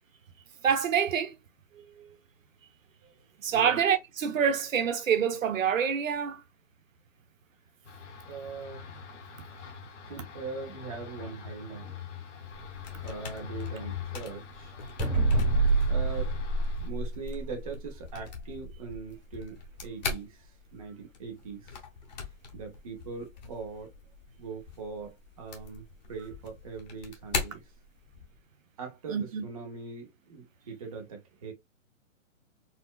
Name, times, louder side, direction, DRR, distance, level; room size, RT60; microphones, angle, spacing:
voice 1, 0.6-1.3 1.7-2.1 3.4-6.4 29.1-29.4, right 7 dB, 75° right, 0.8 m, -27 dB
sound 1, 7.8-16.9, left 8 dB, 60° left, 0.9 m, -43 dB
voice 2, 8.3-8.8 9.6-9.7 10.1-11.9 13.0-14.8 15.6-19.6 19.8-21.8 22.2-23.9 24.4-27.7 28.8-31.5, right 4 dB, 30° right, 0.5 m, -41 dB
sound 2, 12.6-28.4, left 4 dB, 35° left, 0.7 m, -42 dB
sound 3, 15.0-17.7, right 3 dB, 10° right, 1.0 m, -26 dB
4.2 x 2.0 x 2.2 m
hypercardioid pair, 160°, 40 cm